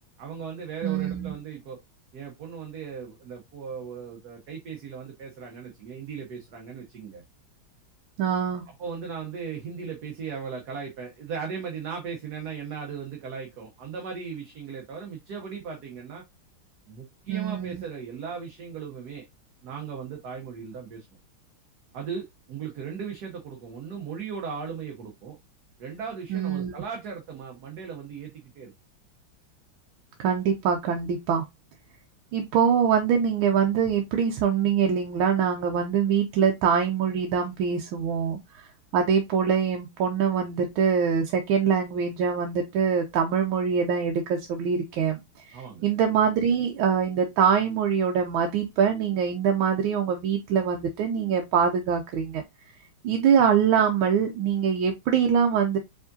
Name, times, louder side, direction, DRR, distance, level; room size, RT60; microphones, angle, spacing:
voice 1, 0.2-1.8 2.1-7.2 8.8-16.2 16.9-19.2 19.6-21.1 21.9-25.4 25.8-28.7 45.5-45.9, right 6 dB, 60° right, 1.2 m, -37 dB
voice 2, 0.8-1.3 8.2-8.6 17.3-17.8 26.3-26.7 30.2-31.4 32.3-45.2 45.5-52.4 53.0-55.8, right 7 dB, 80° right, 1.5 m, -24 dB
4.8 x 3.6 x 2.6 m
omnidirectional pair, 2.3 m